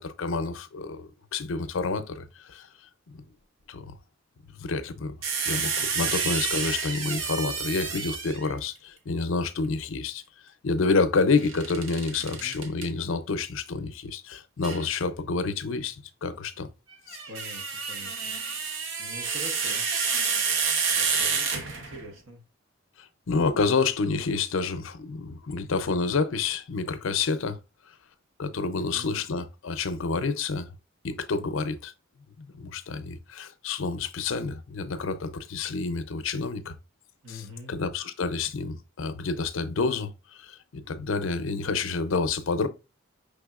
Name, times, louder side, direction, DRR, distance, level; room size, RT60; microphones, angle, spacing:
voice 1, 0.0-2.7 3.1-3.2 3.7-3.9 4.5-5.1 5.5-10.2 10.6-16.7 17.1-17.2 21.1-21.4 23.3-27.6 28.4-30.7 31.0-31.9 32.4-36.8 37.3-42.7, left 4 dB, 75° left, 0.5 m, -29 dB
sound 1, 5.2-8.5 11.4-12.9 14.6-14.8 16.9-22.1, right 5 dB, 70° right, 0.8 m, -29 dB
voice 2, 12.2-12.6 17.3-18.3 19.0-19.9 20.9-22.4 28.8-29.1 37.2-37.7, left 1 dB, 85° right, 1.2 m, -44 dB
5.4 x 3.4 x 2.4 m
head